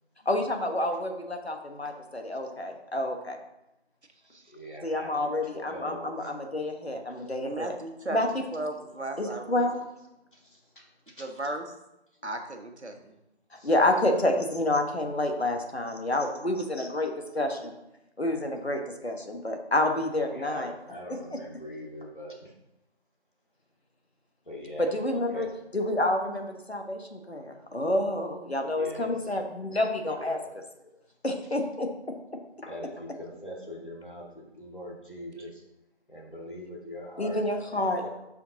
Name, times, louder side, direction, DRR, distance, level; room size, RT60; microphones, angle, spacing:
voice 1, 0.2-3.4 4.8-7.8 8.1-8.4 9.2-9.8 13.5-17.8 18.2-20.7 24.8-25.5 25.7-30.4 31.2-32.7 37.2-38.0, left 1 dB, 65° left, 4 dB, 1.3 m, -29 dB
voice 2, 4.5-6.3 7.2-7.3 10.3-10.8 11.2-11.3 13.5-13.7 20.3-22.5 24.5-25.5 28.8-29.3 30.1-30.4 32.7-35.6 36.1-37.4 37.7-38.1, equal, 50° left, -2 dB, 2.0 m, -42 dB
voice 3, 7.4-8.2 8.5-9.7 11.2-11.6 12.2-13.1, right 1 dB, 80° right, 4 dB, 1.3 m, -36 dB
8.6 x 5.7 x 2.8 m, 0.89 s
figure-of-eight pair, 175°, 33 cm